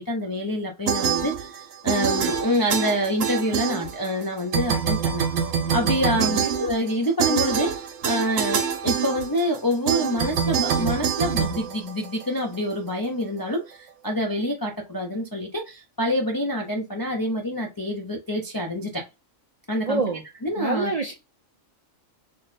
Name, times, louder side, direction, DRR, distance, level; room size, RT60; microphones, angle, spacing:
voice 1, 0.0-5.3 5.7-19.1 19.7-20.9, equal, 35° left, 0.3 m, -27 dB
sound 1, 0.9-1.6 1.9-4.2 4.5-12.4, right 7 dB, 85° right, 1.1 m, -25 dB
voice 2, 6.1-6.6 19.8-20.2 20.6-21.1, right 4 dB, 60° right, 0.4 m, -27 dB
3.5 x 2.2 x 4.0 m
omnidirectional pair, 1.4 m